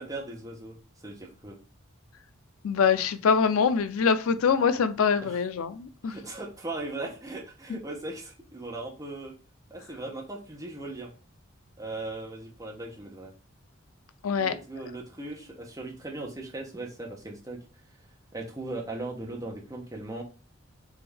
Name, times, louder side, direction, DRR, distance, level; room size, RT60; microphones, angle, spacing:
voice 1, 0.0-1.6 5.2-5.4 6.0-9.3 9.7-11.1 11.8-13.3 14.4-17.6 18.3-20.2, right 2 dB, 15° right, -1 dB, 0.8 m, -38 dB
voice 2, 2.6-6.1 7.7-7.8 14.2-14.5, left 6 dB, 85° left, 12 dB, 0.4 m, -24 dB
3.6 x 3.3 x 3.4 m, 0.38 s
head